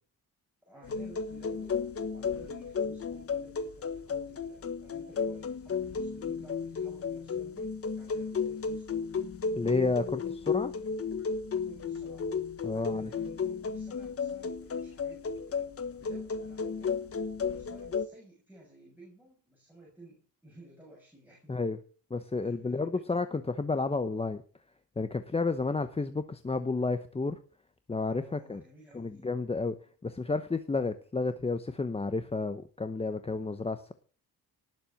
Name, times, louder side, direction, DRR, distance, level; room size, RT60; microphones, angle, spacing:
voice 1, 0.6-9.2 10.9-11.0 11.6-12.4 12.7-17.0 17.5-21.6 22.4-23.0 28.1-29.3 33.3-33.4, right 1 dB, 5° right, -3 dB, 6.5 m, -55 dB
sound 1, 0.8-18.1, left 5 dB, 35° left, 1.4 m, -34 dB
voice 2, 9.5-10.7 12.6-13.1 21.5-21.8 22.1-24.4 25.0-27.4 27.9-28.6 28.9-29.8 30.0-33.9, left 3 dB, 15° left, 10 dB, 0.8 m, -31 dB
19.0 x 7.6 x 7.1 m, 0.42 s
cardioid pair, 145°, 38 cm